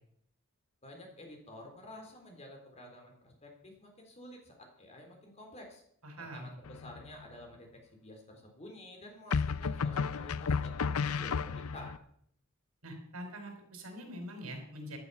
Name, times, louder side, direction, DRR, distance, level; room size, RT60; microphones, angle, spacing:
voice 1, 0.8-5.8 6.2-6.5 6.8-7.7 8.0-12.0, left 1 dB, 30° left, 2 dB, 3.8 m, -51 dB
voice 2, 6.0-6.6 12.8-15.0, equal, 85° right, 4 dB, 4.6 m, -44 dB
sound 1, 6.6-7.2 9.3-12.0, left 5 dB, 85° left, 0.6 m, -32 dB
14.5 x 12.0 x 5.8 m, 0.68 s
head